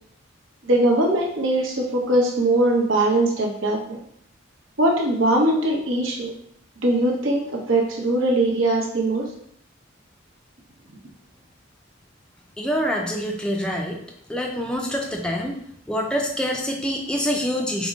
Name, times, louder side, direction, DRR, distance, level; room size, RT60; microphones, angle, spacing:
voice 1, 0.7-4.0 4.8-6.4 6.8-9.3, right 1 dB, 80° right, -1 dB, 0.9 m, -21 dB
voice 2, 12.6-14.0 14.3-17.9, equal, 5° left, 0 dB, 0.3 m, -26 dB
5.1 x 2.1 x 3.5 m, 0.69 s
head